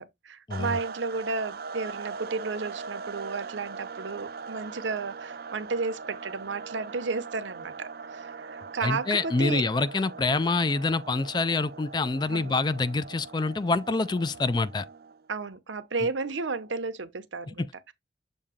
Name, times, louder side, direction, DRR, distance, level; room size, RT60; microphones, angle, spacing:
voice 1, 0.0-9.6 12.3-12.6 15.3-17.9, right 4 dB, 85° right, 0.8 m, -33 dB
sound 1, 0.5-15.3, right 5 dB, 55° right, 0.5 m, -41 dB
voice 2, 8.8-14.9 17.5-17.7, left 3 dB, 25° left, 0.3 m, -26 dB
7.2 x 2.7 x 4.9 m
head